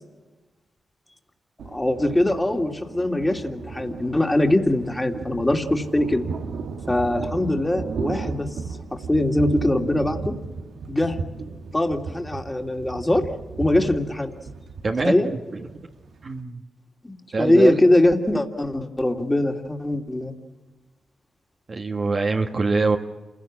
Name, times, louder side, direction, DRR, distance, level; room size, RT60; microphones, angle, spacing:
Thunder, 1.6-16.4, right 4 dB, 80° right, 1.7 m, -35 dB
voice 1, 1.7-6.2 6.9-8.6 8.9-10.4 10.9-11.2 11.7-13.3 13.6-14.3 15.0-15.3 17.0-20.3, left 1 dB, 20° left, 4 dB, 2.8 m, -22 dB
voice 2, 14.8-15.1 15.7-15.8 16.2-16.6 17.3-17.8 21.7-23.0, right 3 dB, 50° right, 1 dB, 1.8 m, -23 dB
28.0 x 16.5 x 7.6 m, 1.2 s
supercardioid pair, 45°, 0 cm